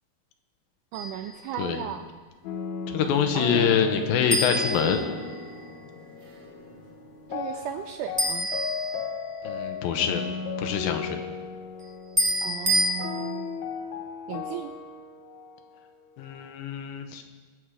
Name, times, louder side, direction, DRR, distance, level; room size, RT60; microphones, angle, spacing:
sound 1, 0.9-1.3 4.3-5.7 8.2-9.5 12.2-12.9, right 1 dB, 15° right, 1.3 m, -27 dB
voice 1, 0.9-2.1 3.3-3.9 7.3-8.5 12.4-13.6 14.3-14.7, right 10 dB, 85° right, 8 dB, 1.8 m, -35 dB
sound 2, 2.4-16.4, left 6 dB, 70° left, 1.8 m, -36 dB
voice 2, 2.9-5.0 9.4-10.2 10.6-11.2 16.2-17.2, left 7 dB, 90° left, 6 dB, 2.8 m, -25 dB
sound 3, 3.0-8.7, left 1 dB, 50° right, 4.7 m, -45 dB
20.5 x 7.5 x 4.9 m, 1.4 s
omnidirectional pair, 4.1 m